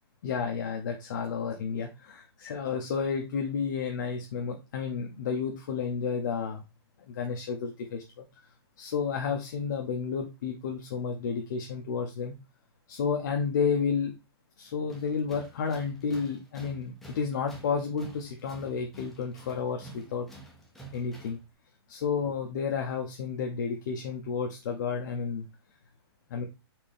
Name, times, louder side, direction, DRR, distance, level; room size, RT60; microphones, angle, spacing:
voice 1, 0.2-6.6 7.1-8.2 8.8-12.4 12.9-14.1 14.6-20.3 20.9-21.4 21.9-25.4 26.3-26.4, left 6 dB, 45° left, 3 dB, 0.6 m, -31 dB
Tools, 14.9-21.5, right 2 dB, ahead, 0.5 m, -50 dB
4.3 x 3.3 x 3.4 m, 0.26 s
hypercardioid pair, 170°, 14 cm